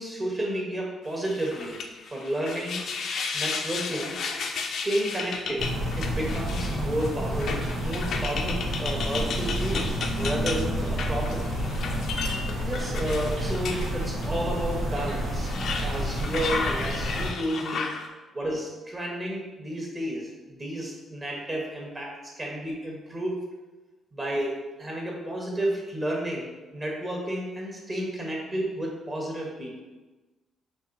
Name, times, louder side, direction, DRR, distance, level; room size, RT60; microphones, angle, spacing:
voice 1, 0.0-1.8 2.1-2.9 3.3-4.2 4.8-5.7 6.0-9.9 10.2-11.5 12.6-15.5 15.8-17.9 18.3-23.4 24.1-24.5 24.8-29.8, right 1 dB, 30° right, -2 dB, 1.0 m, -31 dB
sound 1, 1.2-14.3 14.7-14.8 15.2-18.1, left 5 dB, 65° left, 0.4 m, -34 dB
sound 2, 5.6-17.3, equal, 70° right, 0.9 m, -30 dB
4.4 x 3.0 x 2.6 m, 1.2 s
cardioid pair, 90°, 0 cm